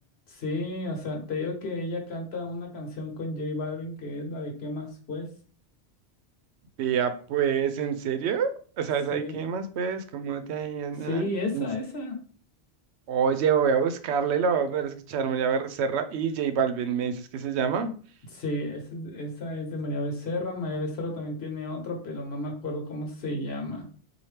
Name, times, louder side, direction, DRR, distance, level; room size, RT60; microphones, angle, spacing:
voice 1, 0.3-5.3 9.1-9.4 11.0-12.2 18.3-23.8, left 2 dB, 70° left, 2 dB, 1.3 m, -32 dB
voice 2, 6.8-8.5 8.8-11.3 11.5-11.6 13.1-17.9, right 7 dB, 85° right, 8 dB, 0.8 m, -27 dB
4.3 x 2.7 x 3.2 m, 0.41 s
omnidirectional pair, 1.1 m